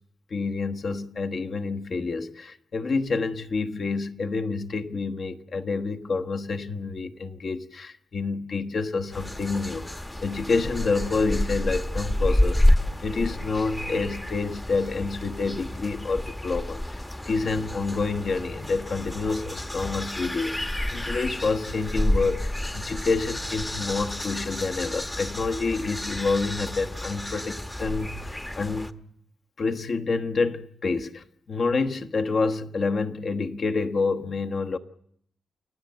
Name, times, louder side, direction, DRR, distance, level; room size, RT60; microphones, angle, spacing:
voice 1, 0.3-12.6 13.0-17.0 17.2-29.0 29.6-34.8, left 4 dB, 50° left, 1.3 m, -28 dB
sound 1, 9.1-28.9, left 1 dB, 10° left, 1.1 m, -29 dB
29.0 x 16.5 x 8.0 m
cardioid pair, 105°, 0 cm